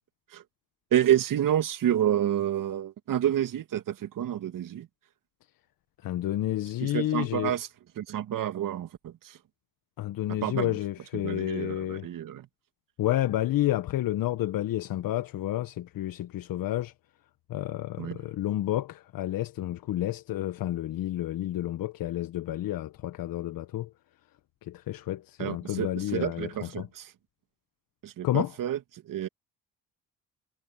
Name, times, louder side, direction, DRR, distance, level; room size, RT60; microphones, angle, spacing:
voice 1, 0.9-4.9 6.8-7.7 8.0-9.4 10.3-10.8 11.2-12.5 18.0-18.2 25.4-27.1 28.0-28.8 29.1-29.3, right 11 dB, 60° right, 2.3 m, -29 dB
voice 2, 6.0-7.6 10.0-12.1 13.0-16.9 17.5-23.9 24.6-26.9 28.2-28.5, left 14 dB, 65° left, 1.5 m, -30 dB
supercardioid pair, 60°, 36 cm